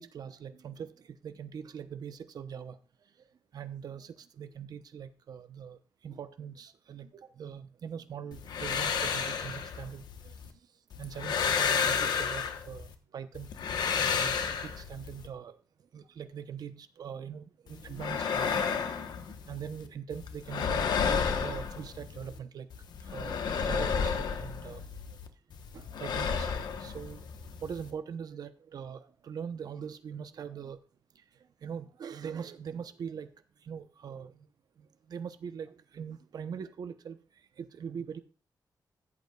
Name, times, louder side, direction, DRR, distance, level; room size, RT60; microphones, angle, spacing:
voice 1, 0.0-2.8 3.5-5.8 6.0-7.1 7.4-10.3 11.0-13.5 14.1-15.5 15.9-19.1 19.5-20.8 21.1-22.7 23.1-24.8 25.7-27.2 27.6-30.8 31.6-33.3 33.7-34.3 35.1-37.2 37.6-38.2, right 7 dB, 70° right, 11 dB, 0.8 m, -42 dB
sound 1, 8.3-10.5 10.9-12.9 13.3-15.3 17.7-19.9 20.1-22.4 22.7-25.3 25.5-27.9, left 6 dB, 85° left, 1.1 m, -32 dB
14.5 x 8.3 x 2.3 m, 0.35 s
wide cardioid pair, 125°, 7 cm